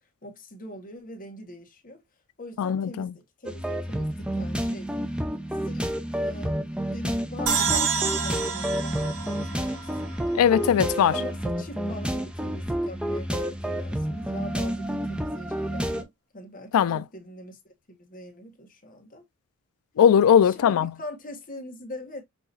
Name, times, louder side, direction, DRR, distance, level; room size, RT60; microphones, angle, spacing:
voice 1, 0.2-2.0 2.4-5.2 5.5-10.1 11.1-19.2 20.4-22.2, left 1 dB, 40° left, 1.5 m, -42 dB
voice 2, 2.6-3.1 10.3-11.1 16.7-17.0 20.0-20.9, left 8 dB, 65° left, 0.3 m, -19 dB
sound 1, 3.5-16.0, equal, 5° right, 0.5 m, -29 dB
sound 2, 7.5-10.8, right 6 dB, 75° right, 1.1 m, -29 dB
5.9 x 2.9 x 2.6 m
head